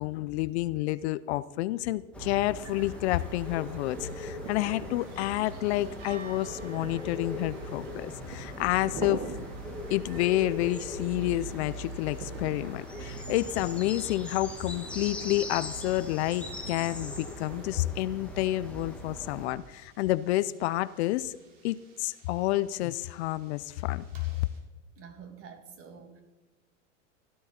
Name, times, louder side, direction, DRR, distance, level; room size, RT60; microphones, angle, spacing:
voice 1, 0.0-9.2 9.9-21.4 21.6-24.0, left 16 dB, 60° left, 16 dB, 0.6 m, -29 dB
sound 1, 2.1-19.5, equal, 5° left, 1.8 m, -40 dB
sound 2, 2.6-17.7, right 4 dB, 55° right, 2.4 m, -46 dB
sound 3, 5.0-24.6, right 4 dB, 75° right, 4.0 m, -58 dB
voice 2, 25.0-26.2, right 6 dB, 35° right, 7 dB, 2.3 m, -48 dB
17.0 x 12.5 x 4.3 m, 1.2 s
supercardioid pair, 130°, 37 cm